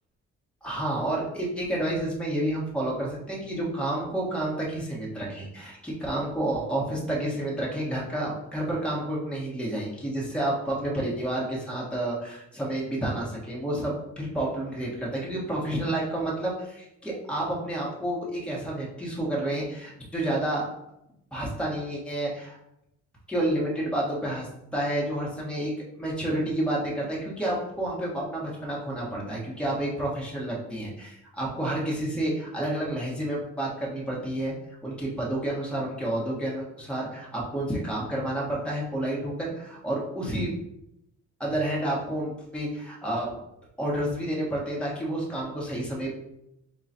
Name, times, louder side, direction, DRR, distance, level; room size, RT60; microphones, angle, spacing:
voice 1, 0.6-20.6 21.3-22.6 23.3-25.7 26.0-34.5 34.8-40.5 41.4-43.3 43.8-46.1, right 1 dB, 5° left, -4 dB, 1.2 m, -30 dB
3.8 x 2.4 x 4.2 m, 0.83 s
cardioid pair, 90°, 30 cm